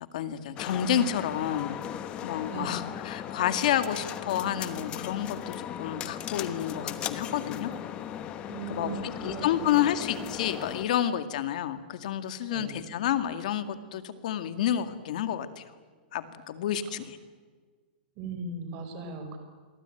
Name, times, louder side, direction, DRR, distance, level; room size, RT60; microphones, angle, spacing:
voice 1, 0.1-1.8 2.2-7.7 8.7-15.6 16.1-17.2, left 10 dB, 50° left, 10 dB, 2.1 m, -30 dB
sound 1, 0.6-10.8, left 10 dB, 20° left, 1.1 m, -37 dB
voice 2, 8.5-9.7 12.5-12.9 18.2-19.4, right 4 dB, 30° right, 7 dB, 5.0 m, -38 dB
27.5 x 23.5 x 9.2 m, 1.5 s
supercardioid pair, 175°, 5 cm